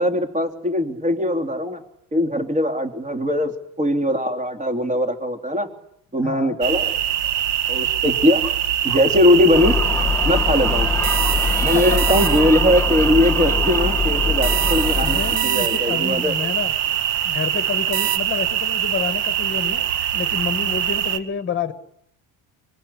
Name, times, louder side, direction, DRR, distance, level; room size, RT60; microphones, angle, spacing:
voice 1, 0.0-1.8 2.1-5.7 6.1-7.0 7.7-8.4 8.8-9.8 10.2-10.9 11.6-16.3, left 1 dB, 15° right, 6 dB, 3.1 m, -20 dB
voice 2, 6.2-6.6 11.7-12.0 15.0-16.7 17.2-21.7, left 6 dB, 25° left, 11 dB, 1.9 m, -29 dB
sound 1, 6.6-21.2, right 10 dB, 65° right, 2.1 m, -23 dB
Gull seagull, 9.5-15.4, left 5 dB, 5° left, 1.5 m, -23 dB
sound 2, 11.0-12.7 14.4-16.1 17.9-18.2, right 15 dB, 90° right, 1.5 m, -27 dB
25.5 x 22.5 x 9.9 m, 0.75 s
cardioid pair, 155°, 45 cm